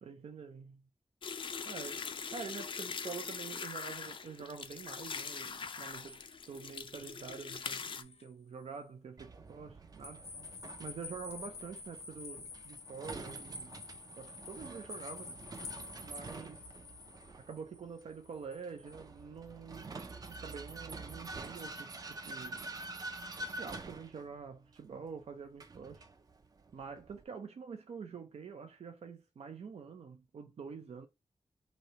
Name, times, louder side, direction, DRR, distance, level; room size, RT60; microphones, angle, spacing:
voice 1, 0.0-0.9 1.6-2.1 2.3-10.2 10.8-13.8 14.2-15.4 15.6-16.6 17.5-19.9 20.3-22.7 23.4-26.0 26.7-31.1, right 5 dB, 80° right, 0.6 m, -47 dB
sound 1, 1.2-8.0, left 5 dB, 55° left, 0.4 m, -42 dB
sound 2, 5.1-8.3 8.7-8.8 10.0-19.0, left 4 dB, 85° left, 0.8 m, -50 dB
Vehicle, 9.2-27.2, right 2 dB, 35° right, 0.4 m, -47 dB
3.1 x 2.8 x 4.2 m
wide cardioid pair, 150°, 11 cm